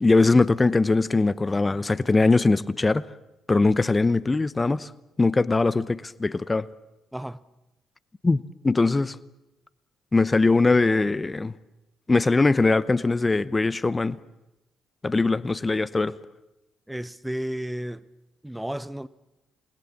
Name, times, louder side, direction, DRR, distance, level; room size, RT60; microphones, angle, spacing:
voice 1, 0.0-3.1 3.5-4.9 5.2-6.7 8.2-9.2 10.1-11.5 12.1-14.2 15.0-16.1, left 3 dB, 25° left, 0.8 m, -21 dB
voice 2, 7.1-7.4 16.9-18.1 18.4-19.1, right 1 dB, 5° right, 0.8 m, -32 dB
28.5 x 20.5 x 7.3 m
figure-of-eight pair, 45°, 0 cm